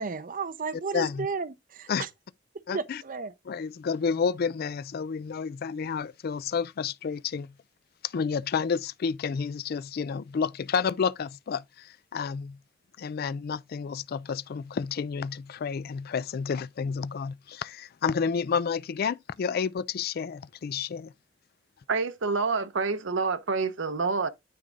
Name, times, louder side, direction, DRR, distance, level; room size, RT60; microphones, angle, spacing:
voice 1, 0.0-2.1 2.7-3.3, right 4 dB, 45° right, 0.7 m, -33 dB
voice 2, 0.9-1.3 1.9-2.0 2.7-3.0 3.5-7.5 8.0-12.6 13.0-21.1, left 6 dB, 55° left, 0.4 m, -30 dB
voice 3, 21.9-24.3, right 4 dB, 90° right, 0.8 m, -27 dB
9.4 x 3.6 x 4.0 m
head